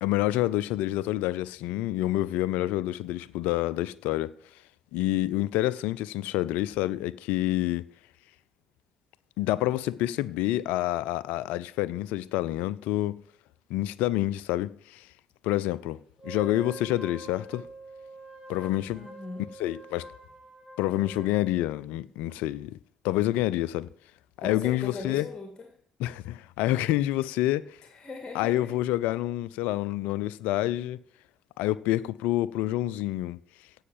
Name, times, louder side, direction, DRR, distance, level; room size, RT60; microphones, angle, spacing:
voice 1, 0.0-4.3 4.9-7.9 9.4-13.2 13.7-15.1 15.4-17.7 18.5-19.1 19.6-20.1 20.8-22.8 23.0-23.9 24.4-25.3 26.0-27.8 28.3-31.0 31.6-33.4, left 15 dB, 65° left, 0.5 m, -28 dB
Wind instrument woodwind instrument, 16.2-21.8, right 2 dB, 15° right, 3.7 m, -45 dB
voice 2, 18.9-19.5 24.4-25.7 27.9-28.7, left 3 dB, 25° left, 2.3 m, -39 dB
16.0 x 5.7 x 7.3 m
figure-of-eight pair, 45°, 3 cm